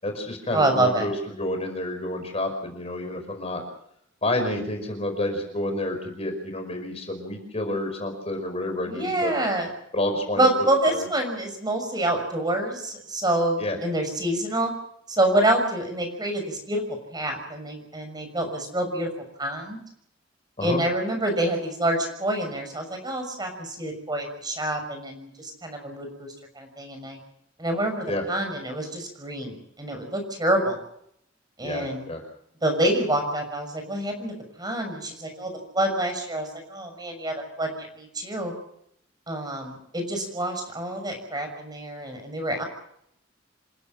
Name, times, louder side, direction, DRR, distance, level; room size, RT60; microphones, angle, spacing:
voice 1, 0.0-3.6 4.2-9.3 9.9-10.5 10.9-11.1 13.6-13.8 20.6-20.8 28.1-28.2 31.6-32.2, left 1 dB, 35° left, 4 dB, 5.3 m, -29 dB
voice 2, 0.5-1.1 8.8-9.7 10.4-14.7 15.1-16.8 17.1-19.1 19.4-19.8 20.6-26.3 26.6-27.2 27.6-30.8 31.6-32.1 32.6-37.7 37.9-38.5 39.3-42.6, right 1 dB, 20° right, 5 dB, 6.4 m, -27 dB
28.0 x 16.0 x 7.6 m, 0.72 s
head